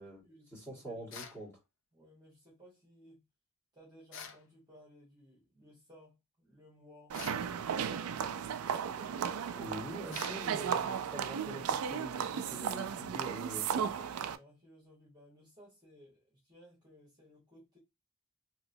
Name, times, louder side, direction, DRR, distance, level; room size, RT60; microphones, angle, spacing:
voice 1, 0.0-1.1 1.9-3.2 3.7-8.0 8.6-9.2 10.3-10.5 12.7-17.8, equal, 20° right, 1.2 m, -60 dB
voice 2, 0.5-1.5 9.5-14.0, right 1 dB, 10° left, 1.6 m, -45 dB
sound 1, 1.1-1.4 4.1-4.4 7.1-7.5 10.1-10.4, left 6 dB, 60° left, 0.5 m, -46 dB
sound 2, 7.1-14.4, right 7 dB, 85° right, 0.3 m, -35 dB
2.9 x 2.9 x 2.7 m
head